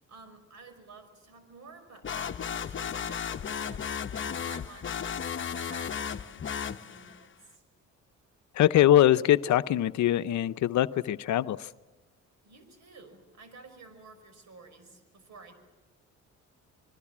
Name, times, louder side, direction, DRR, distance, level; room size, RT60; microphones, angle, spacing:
voice 1, 0.1-5.2 5.5-7.6 12.4-15.5, right 3 dB, 65° right, 5.7 m, -52 dB
sound 1, 2.0-7.2, left 7 dB, 40° left, 1.0 m, -34 dB
voice 2, 8.6-11.7, left 12 dB, 70° left, 0.7 m, -23 dB
26.0 x 21.5 x 7.4 m
cardioid pair, 90°, 30 cm